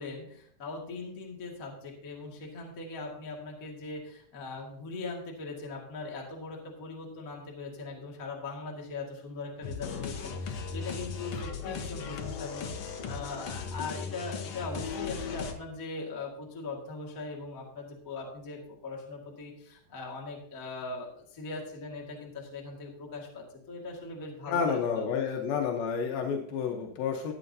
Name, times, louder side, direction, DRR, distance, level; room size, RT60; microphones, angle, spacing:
voice 1, 0.0-25.1, left 3 dB, 30° left, -2 dB, 1.7 m, -40 dB
sound 1, 9.6-15.5, left 5 dB, 65° left, 1.7 m, -37 dB
voice 2, 24.5-27.3, left 6 dB, 85° left, 2 dB, 2.8 m, -30 dB
15.0 x 8.5 x 2.7 m, 0.67 s
omnidirectional pair, 4.1 m